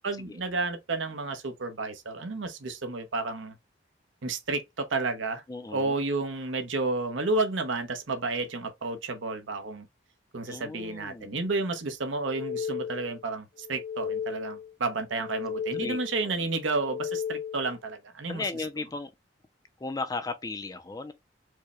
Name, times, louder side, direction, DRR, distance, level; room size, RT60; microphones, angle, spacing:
voice 1, 0.0-3.6 4.2-5.4 5.7-9.9 10.3-18.4, right 3 dB, 90° right, 0.8 m, -31 dB
voice 2, 5.5-6.0 10.5-11.5 15.7-16.0 16.2-16.5 18.3-19.1 19.8-21.1, left 3 dB, 20° left, 0.3 m, -36 dB
sound 1, 12.1-13.2 13.6-14.7 15.1-16.2 16.6-17.8, left 8 dB, 45° left, 0.7 m, -35 dB
4.7 x 2.1 x 2.9 m
head